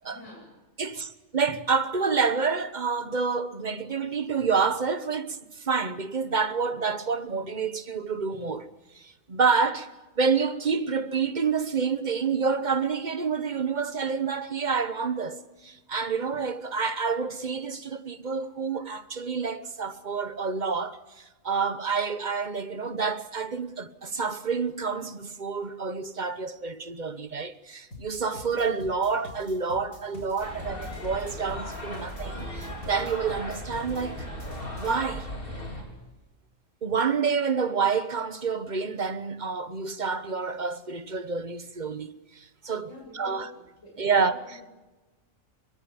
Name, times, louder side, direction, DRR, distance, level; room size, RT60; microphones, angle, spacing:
voice 1, 0.0-0.5 0.8-0.9 42.9-44.7, left 2 dB, 60° left, 8.1 m, -47 dB
voice 2, 0.8-8.7 8.9-34.3 34.8-35.3 36.8-43.5 44.0-44.4, right 5 dB, 35° right, 1.1 m, -28 dB
sound 1, 27.9-35.0, left 2 dB, 80° left, 4.6 m, -45 dB
sound 2, 30.4-35.8, equal, 40° left, 4.8 m, -37 dB
25.0 x 22.5 x 7.2 m
omnidirectional pair, 1.4 m